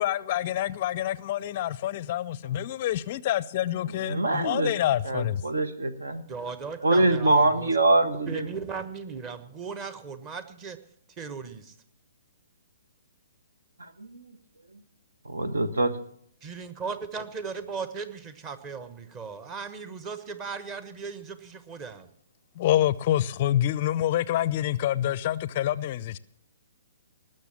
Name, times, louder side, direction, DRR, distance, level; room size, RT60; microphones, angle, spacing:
voice 1, 0.0-5.4 22.6-26.2, left 12 dB, 40° left, 0.5 m, -27 dB
voice 2, 3.9-4.7 5.0-6.2 6.8-8.5 13.8-14.2 15.2-15.9, right 2 dB, 70° right, 1.3 m, -24 dB
voice 3, 6.3-7.7 8.3-10.8 11.2-11.7 16.4-22.1, right 5 dB, 25° right, 1.2 m, -37 dB
19.5 x 6.6 x 7.3 m
figure-of-eight pair, 125°, 0 cm